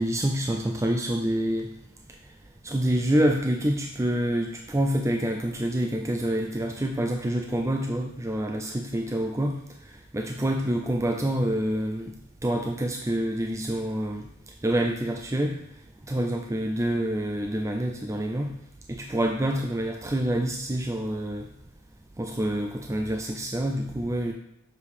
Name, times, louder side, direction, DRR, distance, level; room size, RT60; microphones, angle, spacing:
voice 1, 0.0-1.7 2.6-9.6 9.8-12.1 12.4-14.3 14.6-15.6 16.1-18.5 18.9-21.5 22.2-24.3, right 1 dB, 15° right, 3 dB, 0.4 m, -27 dB
6.8 x 5.2 x 4.8 m, 0.82 s
head